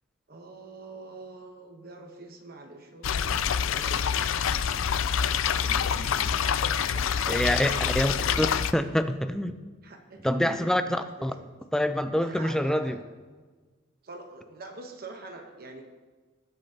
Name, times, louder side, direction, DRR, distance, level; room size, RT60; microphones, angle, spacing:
voice 1, 0.3-4.8 5.6-8.2 9.8-10.9 11.2-11.5 12.2-13.0 14.0-15.8, right 2 dB, 45° right, 3 dB, 1.0 m, -45 dB
sound 1, 3.0-8.7, left 7 dB, 80° left, 0.4 m, -26 dB
voice 2, 7.3-7.7 7.9-8.1 8.4-8.5 8.7-9.6 10.2-11.3 11.7-13.0, equal, 5° left, 9 dB, 0.4 m, -26 dB
19.0 x 8.4 x 2.8 m, 1.4 s
head